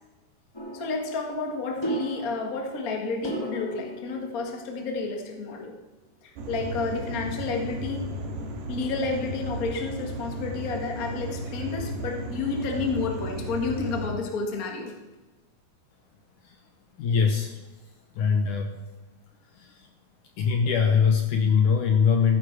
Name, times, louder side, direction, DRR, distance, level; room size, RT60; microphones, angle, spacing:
sound 1, 0.5-5.1, right 1 dB, 15° left, 1.0 m, -36 dB
voice 1, 0.7-5.8 6.2-8.1 8.7-15.0, left 4 dB, 45° left, 3 dB, 1.1 m, -31 dB
sound 2, 6.4-14.1, right 1 dB, 80° right, 3.9 m, -34 dB
voice 2, 17.0-17.6 18.2-18.8 19.5-19.9 20.4-22.4, left 6 dB, 70° left, 4 dB, 2.0 m, -22 dB
15.5 x 9.8 x 4.7 m, 1.2 s
omnidirectional pair, 4.5 m